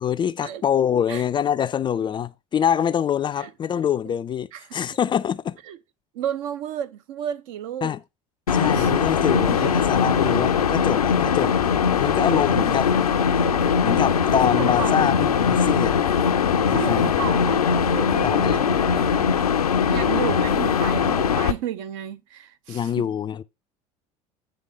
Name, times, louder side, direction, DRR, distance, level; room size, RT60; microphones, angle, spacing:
voice 1, 0.0-5.6 7.8-8.0 8.5-11.5 12.0-12.9 13.8-16.0 16.7-17.1 18.2-18.6 22.7-23.4, left 9 dB, 25° left, 0.3 m, -25 dB
voice 2, 6.1-7.9 8.7-8.9 9.6-9.7 14.5-15.2 16.7-17.6 17.9-19.3 19.9-23.1, right 10 dB, 60° right, 0.6 m, -32 dB
sound 1, 8.5-21.5, left 6 dB, 85° left, 0.5 m, -21 dB
9.0 x 3.3 x 5.3 m
figure-of-eight pair, 65°, 19 cm